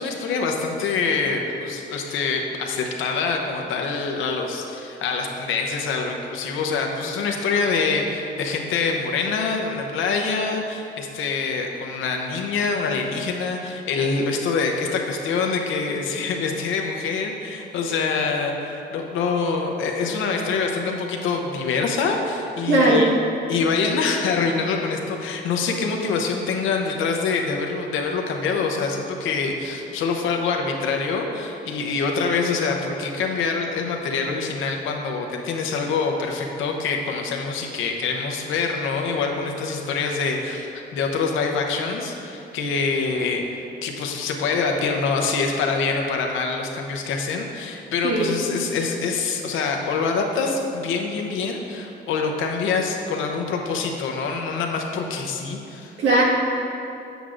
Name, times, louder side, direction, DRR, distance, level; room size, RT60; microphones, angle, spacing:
voice 1, 0.0-23.1 23.5-43.4 43.8-55.9, left 4 dB, 85° left, 2 dB, 0.8 m, -25 dB
voice 2, 22.6-23.1 48.0-48.6 56.0-56.2, right 2 dB, 80° right, -4 dB, 1.5 m, -19 dB
8.0 x 7.9 x 2.5 m, 2.8 s
cardioid pair, 90°, 20 cm